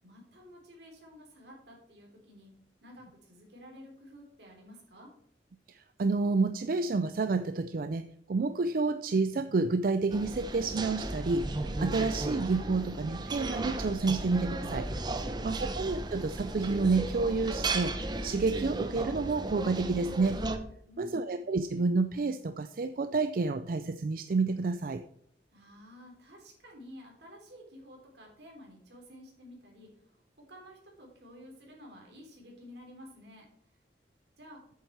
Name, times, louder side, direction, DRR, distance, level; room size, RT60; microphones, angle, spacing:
voice 1, 0.0-2.5 2.8-5.1 20.8-21.4 25.5-33.8 34.4-34.6, equal, 75° right, 0 dB, 3.4 m, -52 dB
voice 2, 5.7-14.9 15.4-20.4 21.0-25.0, right 3 dB, 55° right, 10 dB, 0.4 m, -29 dB
sound 1, 10.1-20.6, right 2 dB, 25° right, 0.7 m, -35 dB
8.4 x 7.1 x 4.6 m, 0.69 s
head